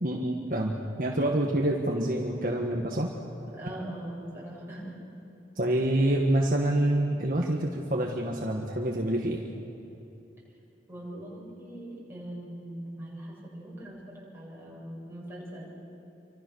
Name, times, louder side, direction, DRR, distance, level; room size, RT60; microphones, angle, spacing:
voice 1, 0.0-3.1 5.6-9.4, right 1 dB, 50° right, 0 dB, 1.8 m, -27 dB
voice 2, 3.5-4.9 10.9-15.7, right 1 dB, 15° right, -5 dB, 7.4 m, -41 dB
28.0 x 25.5 x 6.6 m, 2.8 s
head